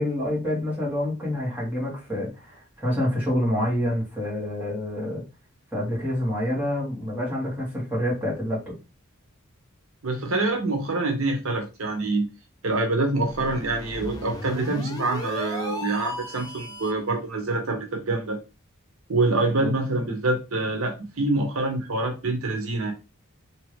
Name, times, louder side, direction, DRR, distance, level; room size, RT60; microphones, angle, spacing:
voice 1, 0.0-5.2 5.7-8.7 19.6-19.7, left 1 dB, 10° right, -6 dB, 1.9 m, -27 dB
voice 2, 10.0-12.3 12.6-18.4 19.1-22.9, right 2 dB, 75° right, 3 dB, 0.9 m, -26 dB
sound 1, 13.2-17.1, left 2 dB, 20° left, 0.7 m, -36 dB
3.5 x 2.9 x 3.2 m, 0.28 s
head